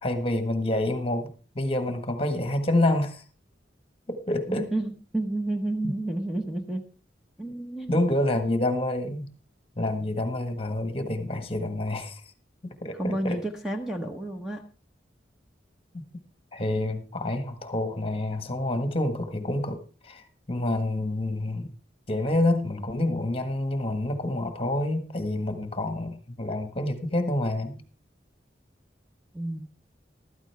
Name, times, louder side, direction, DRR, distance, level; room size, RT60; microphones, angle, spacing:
voice 1, 0.0-3.2 4.1-4.7 5.8-5.9 7.9-9.3 9.8-12.2 12.6-13.4 15.9-16.0 16.5-21.7 22.1-27.8, left 1 dB, 30° left, 8 dB, 1.5 m, -28 dB
voice 2, 4.5-6.9 7.4-7.9 13.0-14.6 29.3-29.6, right 1 dB, ahead, 3 dB, 1.1 m, -30 dB
14.5 x 13.0 x 3.4 m, 0.36 s
head